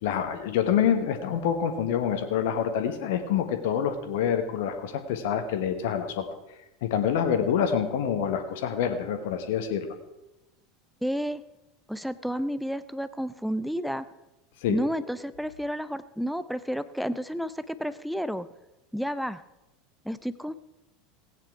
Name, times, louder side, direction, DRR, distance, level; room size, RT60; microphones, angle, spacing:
voice 1, 0.0-6.2 6.8-9.9 14.6-14.8, left 8 dB, 60° left, 8 dB, 1.3 m, -26 dB
voice 2, 11.0-11.4 11.9-14.1 14.7-18.5 18.9-19.4 20.0-20.5, equal, ahead, 14 dB, 0.7 m, -31 dB
16.5 x 9.2 x 4.8 m, 0.97 s
figure-of-eight pair, 75°, 0 cm